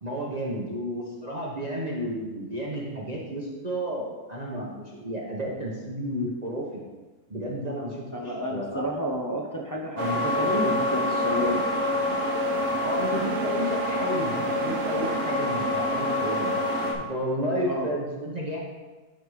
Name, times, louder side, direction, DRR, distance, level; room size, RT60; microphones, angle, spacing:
voice 1, 0.0-6.8 7.3-8.9 9.9-10.8 12.8-16.6 16.9-18.6, equal, 30° right, -4 dB, 1.0 m, -32 dB
voice 2, 8.1-10.7 10.9-11.6 17.6-17.9, equal, 30° left, -1 dB, 0.4 m, -31 dB
sound 1, 10.0-16.9, left 1 dB, 50° right, 1.3 m, -26 dB
10.5 x 3.6 x 4.8 m, 1.2 s
omnidirectional pair, 1.6 m